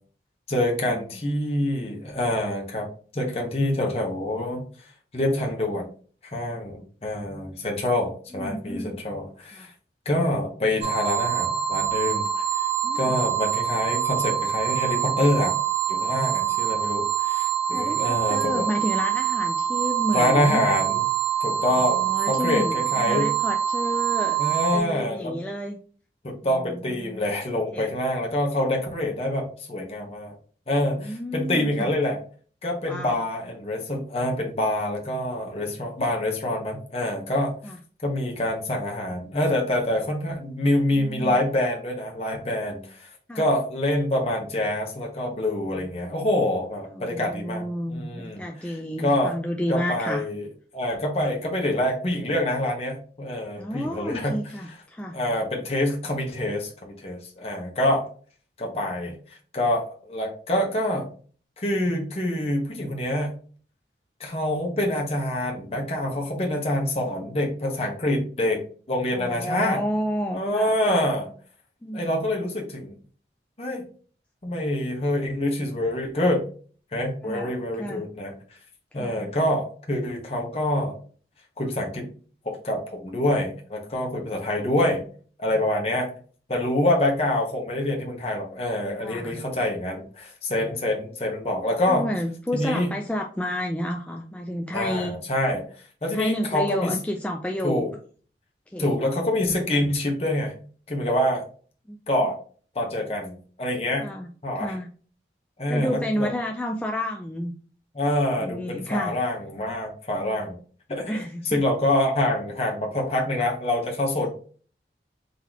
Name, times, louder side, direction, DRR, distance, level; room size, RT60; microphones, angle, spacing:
voice 1, 0.5-2.9 3.1-4.6 5.1-5.9 6.3-9.7 10.0-12.3 12.9-15.5 15.9-18.7 20.1-21.0 21.4-23.3 24.4-25.4 26.2-30.3 30.7-32.2 32.6-37.5 38.0-43.1 43.3-49.3 49.7-50.4 50.7-54.3 55.1-58.0 58.6-59.1 59.5-61.1 61.6-63.3 64.2-68.6 68.9-69.8 70.3-71.3 71.9-72.9 73.6-73.8 74.4-76.5 76.9-78.3 78.9-80.9 81.6-82.1 82.4-85.0 85.4-86.1 86.5-92.0 92.5-92.9 94.7-95.6 96.0-96.9 97.6-97.9 98.8-100.5 100.9-101.5 102.1-102.4 102.7-104.1 104.4-104.7 105.6-106.3 107.9-110.6 110.9-111.2 111.4-114.3, left 1 dB, 35° left, 0 dB, 0.9 m, -26 dB
voice 2, 8.3-9.0 9.5-9.7 12.8-13.2 17.7-20.6 21.7-24.4 24.7-25.8 26.6-27.2 27.7-27.9 31.0-31.9 32.8-33.2 37.6-37.8 40.9-41.4 43.3-43.5 46.9-50.3 53.6-55.2 69.1-71.0 71.8-72.1 77.2-78.0 79.0-79.3 89.0-89.4 91.9-95.2 96.1-97.8 98.7-98.9 101.9-102.0 104.0-104.3 104.6-104.9 105.7-107.5 108.4-109.1 111.1-111.6, equal, 5° left, 2 dB, 0.3 m, -30 dB
sound 1, 10.8-24.8, right 9 dB, 35° right, 1.7 m, -25 dB
3.9 x 2.9 x 4.5 m, 0.43 s
head